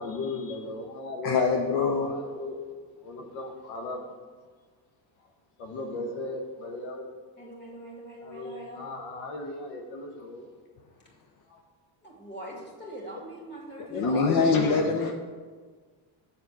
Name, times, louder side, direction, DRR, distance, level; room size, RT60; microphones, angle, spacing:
voice 1, 0.0-2.6 3.0-4.0 5.6-7.0 8.2-10.5 13.9-15.1, left 2 dB, 85° left, 2 dB, 1.3 m, -35 dB
voice 2, 1.2-2.1 13.9-15.1, left 4 dB, 50° left, 3 dB, 0.8 m, -24 dB
voice 3, 7.4-8.8 12.0-14.2, right 1 dB, 20° left, -3 dB, 2.5 m, -42 dB
7.1 x 4.3 x 6.4 m, 1.5 s
cardioid pair, 120°, 46 cm